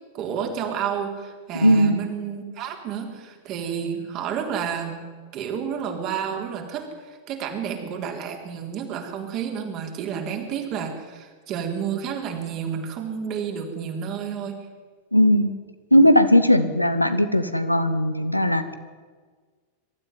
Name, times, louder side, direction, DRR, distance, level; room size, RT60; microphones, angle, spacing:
voice 1, 0.1-5.0 5.3-14.5, right 7 dB, 40° right, 3 dB, 3.7 m, -30 dB
voice 2, 1.5-2.0 15.1-15.5 15.9-18.7, equal, 85° left, 10 dB, 1.3 m, -18 dB
23.0 x 13.0 x 9.6 m, 1.5 s
figure-of-eight pair, 90°, 0 cm